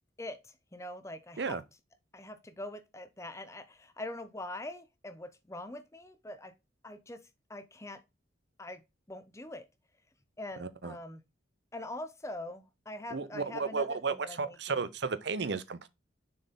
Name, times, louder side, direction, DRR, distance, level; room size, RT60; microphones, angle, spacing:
voice 1, 0.2-1.6 2.1-6.5 6.8-7.2 7.5-8.0 8.6-8.8 9.1-9.7 10.4-11.2 11.7-14.8, left 1 dB, 15° left, 0.6 m, -43 dB
voice 2, 10.6-10.9 13.1-15.9, right 4 dB, 60° right, 0.6 m, -33 dB
6.7 x 4.4 x 3.6 m
head